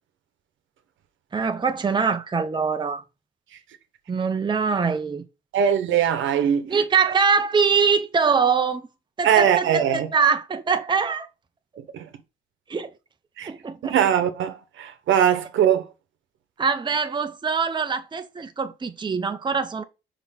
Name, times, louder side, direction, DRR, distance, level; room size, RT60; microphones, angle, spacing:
voice 1, 1.3-3.0 4.1-5.2 6.6-8.8 9.2-9.8 10.1-11.3 12.7-12.9 13.4-14.0 16.6-19.8, right 5 dB, 25° right, 0.8 m, -23 dB
voice 2, 5.5-6.8 9.2-10.1 11.8-12.1 13.4-13.5 13.8-15.9, right 9 dB, 75° right, 1.2 m, -21 dB
6.0 x 3.8 x 4.2 m
cardioid pair, 90°, 20 cm